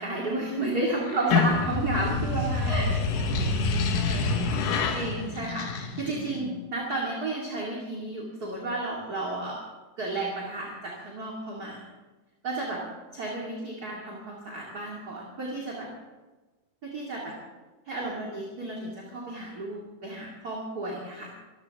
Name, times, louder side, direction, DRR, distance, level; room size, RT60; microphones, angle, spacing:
voice 1, 0.0-2.9 3.2-3.3 4.9-9.6 10.0-11.8 12.4-12.8 13.1-15.9 16.8-17.4 17.9-21.3, right 2 dB, 30° right, -3 dB, 2.5 m, -32 dB
voice 2, 1.0-1.4 2.3-4.9 6.2-6.6, right 2 dB, 90° right, -6 dB, 6.7 m, -38 dB
sound 1, 1.1-6.4, left 4 dB, 85° left, 3.0 m, -27 dB
24.5 x 14.5 x 3.6 m, 1.2 s
omnidirectional pair, 3.7 m